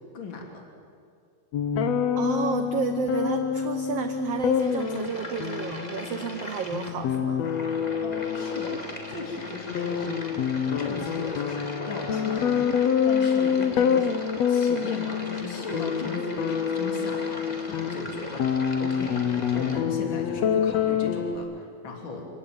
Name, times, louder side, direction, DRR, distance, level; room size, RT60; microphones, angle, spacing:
voice 1, 0.1-0.6 8.0-8.8 9.1-10.3 10.7-14.2 14.5-18.4 18.8-19.2 19.5-22.3, left 3 dB, 35° left, 1 dB, 3.6 m, -37 dB
sound 1, 1.5-21.4, left 7 dB, 65° left, 1.9 m, -27 dB
voice 2, 2.1-7.4, right 7 dB, 80° right, 8 dB, 1.3 m, -31 dB
sound 2, 4.2-19.8, left 1 dB, 20° left, 1.3 m, -40 dB
27.5 x 16.5 x 9.0 m, 2.3 s
omnidirectional pair, 4.1 m